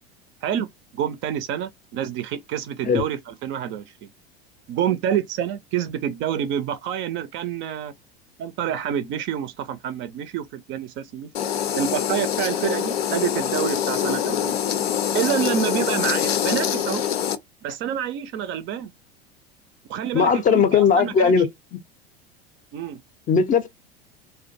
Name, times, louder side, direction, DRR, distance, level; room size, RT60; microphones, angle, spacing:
voice 1, 0.9-4.1 4.7-7.9 8.4-11.3 11.7-14.9 15.1-17.1 17.6-18.9 19.9-21.5 22.7-23.0, right 9 dB, 40° right, 0.5 m, -28 dB
sound 1, 11.3-17.4, left 9 dB, 80° left, 0.5 m, -24 dB
voice 2, 20.1-21.5 23.3-23.7, left 6 dB, 25° left, 0.5 m, -18 dB
2.4 x 2.2 x 2.6 m
hypercardioid pair, 80°, 30 cm